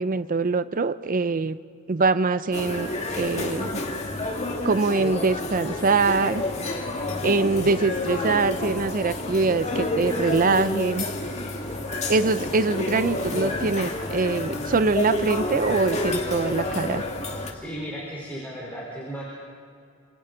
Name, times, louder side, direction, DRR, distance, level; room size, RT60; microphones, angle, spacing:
voice 1, 0.0-1.6 1.9-2.9 3.2-3.8 4.6-6.4 7.2-11.0 12.1-17.0, right 3 dB, 40° right, 13 dB, 0.6 m, -23 dB
sound 1, 2.5-17.5, left 2 dB, 30° left, 2.0 m, -29 dB
voice 2, 17.5-19.2, equal, 10° left, -5 dB, 3.9 m, -35 dB
27.0 x 25.5 x 3.9 m, 2.3 s
head